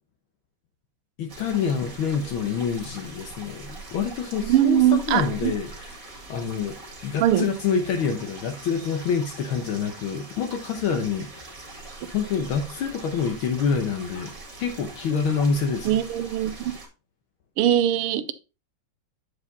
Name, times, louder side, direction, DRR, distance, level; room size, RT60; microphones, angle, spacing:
voice 1, 1.2-6.8 7.0-11.6 12.1-14.3 14.6-16.0, left 6 dB, 70° left, 1.7 m, -27 dB
sound 1, 1.3-16.9, right 2 dB, 40° right, 2.5 m, -42 dB
voice 2, 4.4-5.5 7.2-7.5 15.8-16.7 17.6-18.3, right 11 dB, 85° right, 1.6 m, -21 dB
8.5 x 4.9 x 3.9 m
omnidirectional pair, 2.4 m